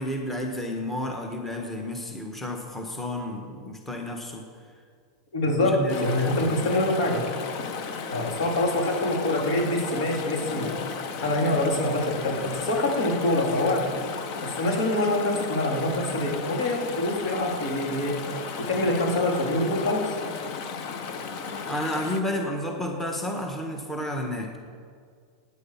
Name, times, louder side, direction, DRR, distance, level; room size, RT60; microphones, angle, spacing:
voice 1, 0.0-4.4 5.5-6.7 21.7-24.7, left 1 dB, 10° left, 2 dB, 1.5 m, -31 dB
voice 2, 5.3-7.2 8.1-10.7 11.2-13.8 14.6-18.1 18.7-20.1, left 1 dB, 75° left, -1 dB, 3.5 m, -25 dB
Chatter / Stream, 5.9-22.2, left 5 dB, 55° left, 1.3 m, -34 dB
16.5 x 9.6 x 5.9 m, 2.1 s
supercardioid pair, 140°, 3 cm